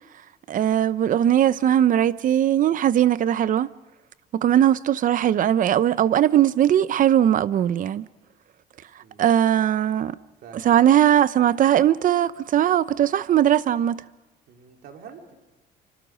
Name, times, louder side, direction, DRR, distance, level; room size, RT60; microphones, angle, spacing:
voice 1, 0.5-3.7 4.3-8.1 9.2-10.2 10.6-14.0, right 10 dB, 50° right, 0.8 m, -19 dB
voice 2, 14.5-15.4, right 6 dB, 70° right, 4.2 m, -46 dB
28.0 x 25.0 x 5.2 m
cardioid pair, 110°, 17 cm